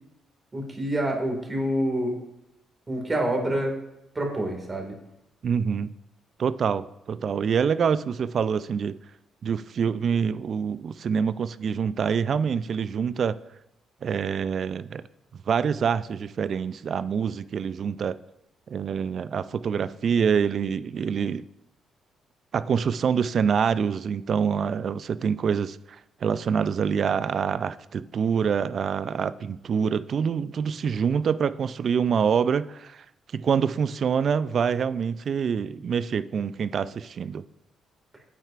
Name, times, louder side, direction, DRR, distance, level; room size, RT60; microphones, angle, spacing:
voice 1, 0.5-2.2 2.9-3.8 4.2-4.9, right 1 dB, 25° right, 2 dB, 1.9 m, -27 dB
voice 2, 5.4-5.9 6.4-9.0 9.4-13.4 14.0-15.0 15.5-18.2 18.7-21.4 22.5-33.0 33.3-37.4, right 7 dB, 55° right, 16 dB, 0.3 m, -26 dB
9.0 x 7.9 x 2.5 m, 0.84 s
cardioid pair, 90°, 0 cm